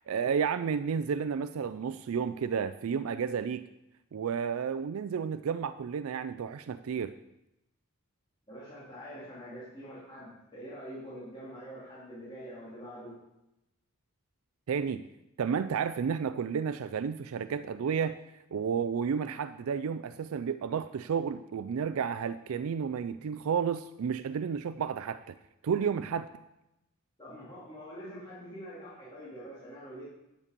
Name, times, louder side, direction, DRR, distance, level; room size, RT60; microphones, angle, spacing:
voice 1, 0.1-3.6 4.1-7.1 14.7-15.0 15.4-18.2 18.5-25.4 25.6-26.3, right 6 dB, 75° right, 12 dB, 0.4 m, -31 dB
voice 2, 8.5-13.2 27.2-30.1, equal, 20° left, -10 dB, 2.9 m, -45 dB
9.9 x 8.2 x 5.2 m, 0.90 s
head